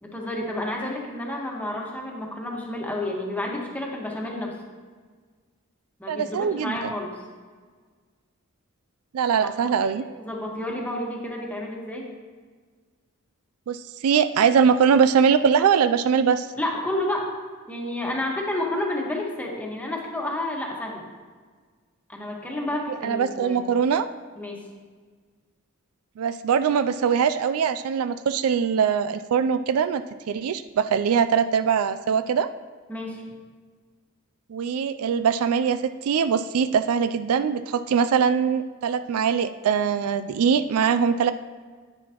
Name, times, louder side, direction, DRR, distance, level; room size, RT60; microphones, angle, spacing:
voice 1, 0.0-4.5 6.0-7.1 9.4-12.1 16.6-17.3 17.7-21.0 22.1-23.7 24.4-24.7 32.9-33.3, left 1 dB, 5° left, -1 dB, 1.3 m, -30 dB
voice 2, 6.1-6.9 9.1-10.1 13.7-16.5 23.0-24.1 26.2-32.5 34.5-41.3, right 7 dB, 75° right, 12 dB, 0.4 m, -22 dB
9.8 x 9.3 x 2.9 m, 1.5 s
head